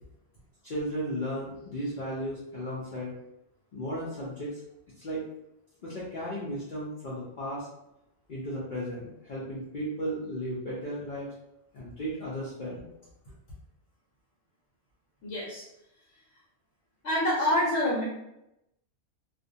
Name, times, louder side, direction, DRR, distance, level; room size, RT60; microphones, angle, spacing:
voice 1, 0.6-3.1 3.7-4.6 5.0-5.3 5.8-7.7 8.3-11.3 11.7-12.9, equal, 55° left, -7 dB, 0.6 m, -35 dB
voice 2, 15.2-15.6 17.0-18.0, left 1 dB, 80° left, -7 dB, 1.1 m, -26 dB
2.5 x 2.1 x 2.6 m, 0.85 s
omnidirectional pair, 1.2 m